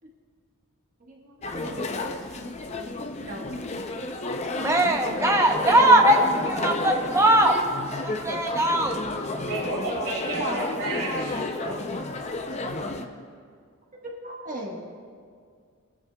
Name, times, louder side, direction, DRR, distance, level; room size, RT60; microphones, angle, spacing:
voice 1, 1.1-2.2 3.2-4.2 5.8-6.2 10.4-10.9 12.5-13.0 14.0-14.8, right 1 dB, 35° right, -2 dB, 1.4 m, -37 dB
sound 1, 1.4-13.1, left 2 dB, 30° left, 0.5 m, -31 dB
voice 2, 4.6-7.6 8.0-9.0, right 1 dB, 10° right, 2 dB, 0.7 m, -20 dB
voice 3, 9.5-11.8, right 2 dB, 60° right, -4 dB, 2.4 m, -31 dB
19.0 x 10.0 x 2.3 m, 2.1 s
head